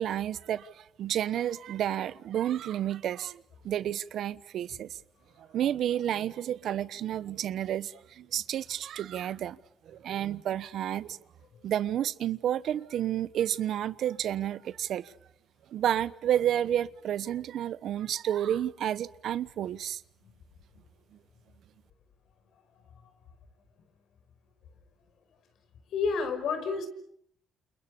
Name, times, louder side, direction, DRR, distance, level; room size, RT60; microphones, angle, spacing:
voice 1, 0.0-4.9 5.5-9.6 9.9-11.2 11.6-15.1 15.7-20.0, right 10 dB, 75° right, 1.1 m, -31 dB
voice 2, 25.9-26.9, left 5 dB, 75° left, 5.6 m, -29 dB
29.5 x 29.0 x 6.9 m
cardioid pair, 90°, 0 cm